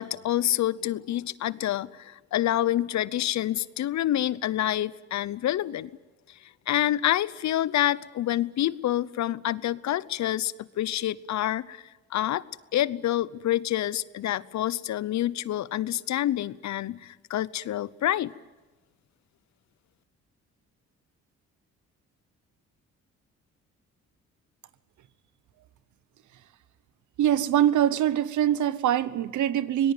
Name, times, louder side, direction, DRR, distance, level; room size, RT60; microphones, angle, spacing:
voice 1, 0.0-5.9 6.7-11.8 12.1-12.4 12.7-18.3, left 13 dB, 65° left, 20 dB, 0.8 m, -27 dB
voice 2, 27.2-29.9, right 11 dB, 75° right, 17 dB, 1.1 m, -23 dB
24.5 x 19.0 x 9.3 m, 1.2 s
cardioid pair, 90°, 30 cm